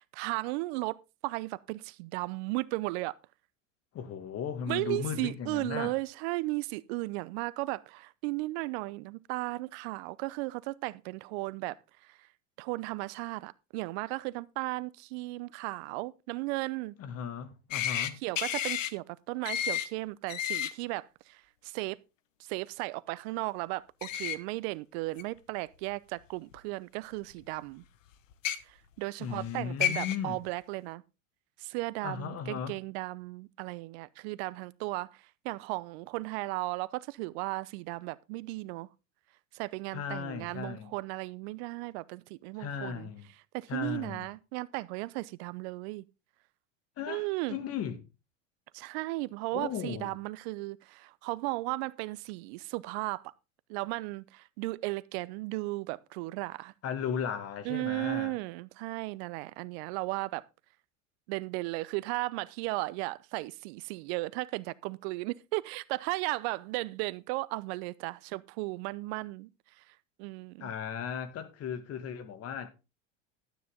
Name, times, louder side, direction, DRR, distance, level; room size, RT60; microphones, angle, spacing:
voice 1, 0.0-3.1 4.7-11.8 12.0-12.2 12.6-17.0 18.2-22.0 22.4-27.8 28.7-31.0 31.6-38.9 39.5-43.1 43.5-46.0 47.1-47.6 48.7-53.3 53.7-56.7 57.6-60.4 61.3-69.5 69.9-70.7, right 22 dB, 55° right, 0.7 m, -35 dB
voice 2, 3.9-5.9 17.0-18.2 29.2-30.4 32.0-32.8 39.9-40.9 42.6-43.3 43.7-44.3 47.0-48.0 49.5-50.1 56.8-58.4 70.6-72.7, left 8 dB, 40° left, 2.0 m, -36 dB
sound 1, 17.7-18.1 18.4-18.9 19.4-19.9 20.3-20.7 24.0-24.4 25.2-25.3 26.5-26.6 28.3-28.6 29.4-29.5 29.8-30.2, left 10 dB, 80° left, 1.2 m, -31 dB
12.5 x 9.3 x 3.6 m
hypercardioid pair, 95°, 38 cm